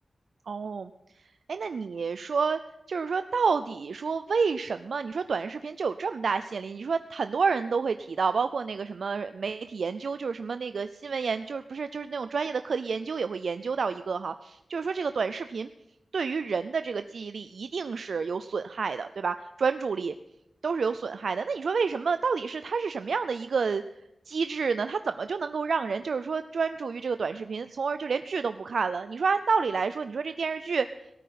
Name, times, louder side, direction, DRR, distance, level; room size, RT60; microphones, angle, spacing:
voice 1, 0.5-0.9 1.5-2.6 2.9-15.7 16.1-20.1 20.6-23.8 24.3-30.9, right 5 dB, 70° right, 10 dB, 0.4 m, -29 dB
17.5 x 9.3 x 5.8 m, 0.86 s
wide cardioid pair, 125°, 0 cm